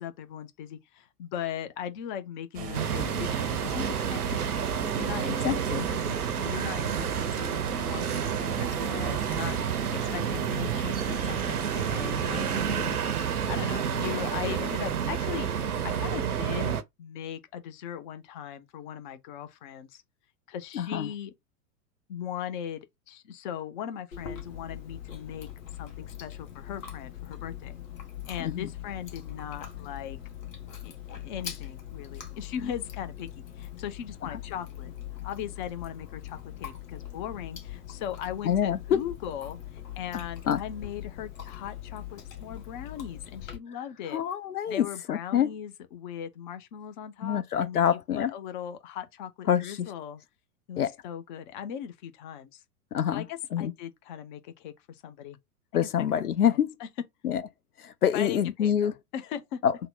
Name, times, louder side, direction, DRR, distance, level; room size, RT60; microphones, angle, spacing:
voice 1, 0.0-4.6 4.9-15.5 15.8-20.0 20.5-21.3 22.1-27.8 28.3-30.2 30.8-33.3 33.6-34.9 35.2-44.2 44.7-50.2 50.7-52.6 53.1-55.4 56.1-56.9 58.1-59.6, left 9 dB, 35° left, 0.6 m, -39 dB
sound 1, 2.5-12.8, right 6 dB, 20° right, 0.7 m, -38 dB
sound 2, 2.7-16.8, right 8 dB, 75° right, 0.7 m, -30 dB
voice 2, 5.4-5.9 20.7-21.1 28.4-28.7 34.2-34.4 38.4-39.0 40.5-40.6 44.1-45.5 47.2-48.3 49.5-49.9 50.8-50.9 52.9-53.2 53.5-53.7 55.7-56.8 57.2-57.4 57.8-58.9 59.6-59.8, left 9 dB, 80° left, 0.5 m, -26 dB
Chewing mastication, 24.1-43.6, left 10 dB, 60° left, 1.4 m, -42 dB
3.7 x 2.1 x 3.6 m
figure-of-eight pair, 100°, 45 cm